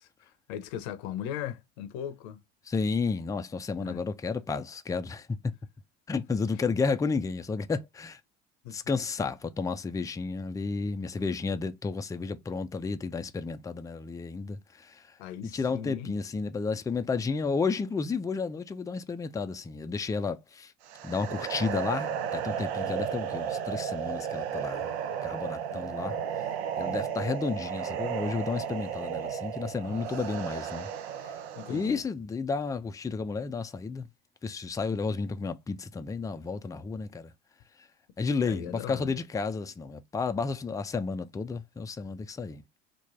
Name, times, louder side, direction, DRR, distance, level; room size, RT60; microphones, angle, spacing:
voice 1, 0.0-2.4 3.8-4.0 8.6-8.8 15.2-16.1 25.7-26.3 29.8-30.6 31.6-32.0 38.4-39.1, left 9 dB, 75° left, 0.7 m, -39 dB
voice 2, 2.7-5.5 6.1-8.2 8.7-15.0 15.5-20.7 21.0-24.9 25.2-26.2 26.8-30.9 31.7-34.1 34.4-37.3 38.2-42.6, left 4 dB, 10° left, 0.4 m, -32 dB
sound 1, 20.9-32.0, right 8 dB, 80° right, 0.6 m, -34 dB
3.1 x 2.2 x 3.6 m
hypercardioid pair, 70°, 32 cm